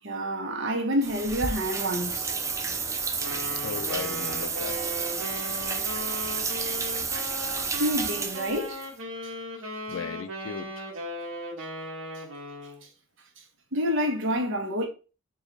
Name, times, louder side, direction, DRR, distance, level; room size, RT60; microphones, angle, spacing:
voice 1, 0.0-2.4 6.0-6.3 7.7-8.8 9.2-9.3 13.7-14.9, equal, 65° right, 0.8 m, -28 dB
sound 1, 1.0-8.9, right 5 dB, 15° right, 0.3 m, -31 dB
Wind instrument woodwind instrument, 3.2-12.8, equal, 85° right, 1.0 m, -37 dB
voice 2, 3.6-4.8 9.9-10.9, left 7 dB, 75° left, 0.3 m, -36 dB
3.8 x 2.3 x 3.1 m
head